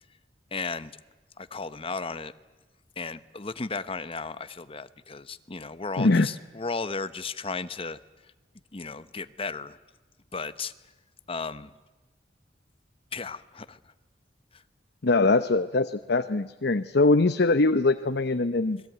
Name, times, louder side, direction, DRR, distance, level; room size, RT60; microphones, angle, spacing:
voice 1, 0.5-0.9 1.4-2.3 3.0-8.0 8.7-9.8 10.3-10.7 11.3-11.7 13.1-13.8 14.5-14.6, left 4 dB, 30° left, 13 dB, 0.9 m, -35 dB
voice 2, 6.0-6.3 15.0-18.8, left 3 dB, 60° left, 10 dB, 0.8 m, -22 dB
29.0 x 21.5 x 9.2 m, 1.2 s
head